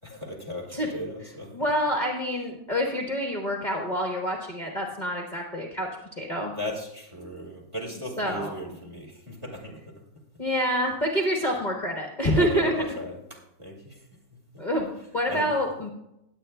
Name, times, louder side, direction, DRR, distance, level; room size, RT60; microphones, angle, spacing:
voice 1, 0.0-1.5 6.6-9.8 12.4-14.0 15.3-15.5, equal, 15° right, 0 dB, 1.8 m, -36 dB
voice 2, 1.5-5.9 6.2-6.5 8.2-8.5 10.4-12.7 14.6-15.9, equal, 30° left, -1 dB, 1.2 m, -27 dB
19.5 x 8.5 x 2.2 m, 0.84 s
omnidirectional pair, 1.9 m